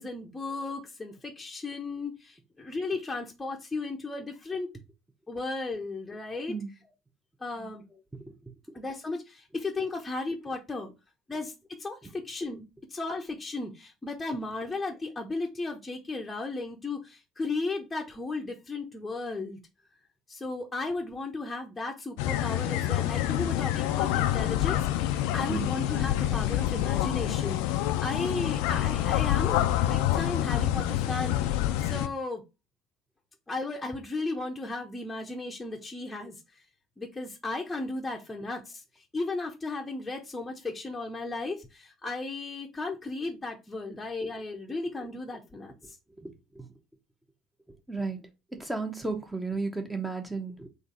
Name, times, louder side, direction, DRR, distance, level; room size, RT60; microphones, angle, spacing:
voice 1, 0.0-4.7 5.3-6.5 7.4-8.0 8.7-10.9 11.3-19.6 20.3-31.4 31.8-32.4 33.5-36.6 37.0-46.0, left 3 dB, 15° left, 0 dB, 0.9 m, -35 dB
sound 1, 22.2-32.1, left 13 dB, 65° left, 0.4 m, -27 dB
voice 2, 46.2-46.7 47.7-50.7, right 3 dB, 10° right, 5 dB, 1.1 m, -35 dB
3.9 x 2.7 x 3.9 m, 0.26 s
figure-of-eight pair, 60°, 0 cm